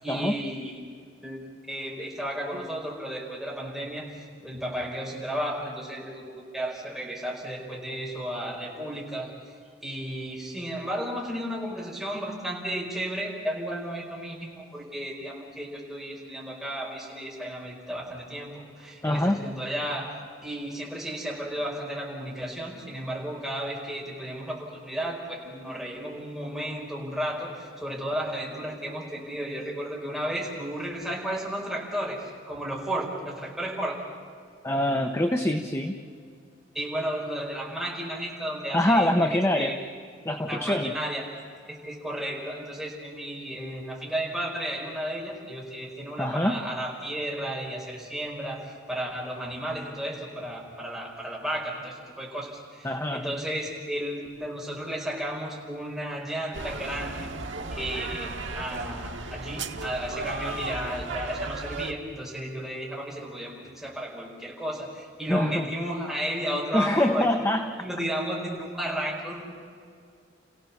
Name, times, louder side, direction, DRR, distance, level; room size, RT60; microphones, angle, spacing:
voice 1, 0.0-0.7 1.2-1.4 1.7-9.3 9.8-20.1 20.4-34.0 36.7-39.8 40.5-41.2 41.7-57.3 57.7-67.5 67.8-69.4, right 1 dB, ahead, -4 dB, 5.1 m, -33 dB
voice 2, 19.0-19.4 34.6-36.0 38.7-39.7 40.2-40.9 46.2-46.6 52.8-53.3 65.3-65.7 66.7-67.7, left 1 dB, 15° left, 5 dB, 0.9 m, -24 dB
sound 1, 56.5-61.9, right 3 dB, 85° right, 1.4 m, -35 dB
29.5 x 16.5 x 7.3 m, 2.3 s
head